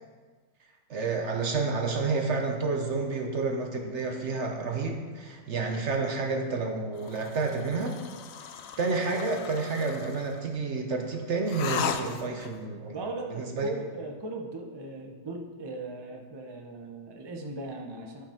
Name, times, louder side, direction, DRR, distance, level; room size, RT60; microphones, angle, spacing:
voice 1, 0.9-8.0 8.8-13.7, right 4 dB, 55° right, 3 dB, 1.0 m, -30 dB
sound 1, 7.0-10.4 11.5-12.6, left 7 dB, 65° left, 0.9 m, -36 dB
voice 2, 12.9-18.2, right 2 dB, 25° right, 1 dB, 0.5 m, -38 dB
11.5 x 5.6 x 4.3 m, 1.5 s
omnidirectional pair, 1.8 m